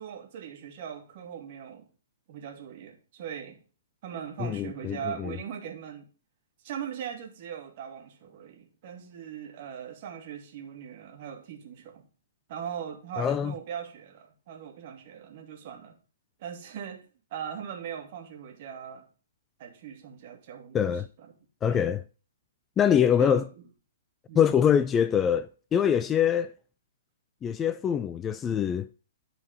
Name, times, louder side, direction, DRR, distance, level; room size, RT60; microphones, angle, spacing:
voice 1, 0.0-1.9 2.3-3.6 4.0-6.1 6.6-12.1 12.5-15.9 16.4-17.0 17.3-19.1 19.6-20.8 21.7-21.9 22.8-23.5 24.3-24.5, right 8 dB, 45° right, 2.2 m, -40 dB
voice 2, 4.4-5.4 13.2-13.5 20.7-21.1 21.6-22.0 22.8-23.5 24.4-26.5 27.4-28.9, left 8 dB, 20° left, 0.4 m, -24 dB
11.0 x 4.7 x 5.2 m
figure-of-eight pair, 120°, 0 cm